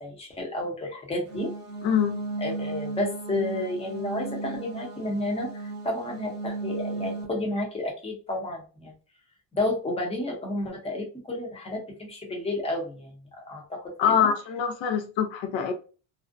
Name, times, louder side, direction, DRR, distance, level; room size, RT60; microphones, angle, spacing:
voice 1, 0.0-1.5 2.4-5.5 5.8-8.9 9.5-13.9 14.2-14.3, left 1 dB, 15° left, -1 dB, 0.7 m, -31 dB
sound 1, 1.3-7.2, right 3 dB, 25° right, 0.8 m, -35 dB
voice 2, 1.8-2.2 14.0-15.7, left 8 dB, 80° left, 5 dB, 0.6 m, -24 dB
2.5 x 2.0 x 2.4 m, 0.36 s
cardioid pair, 145°, 44 cm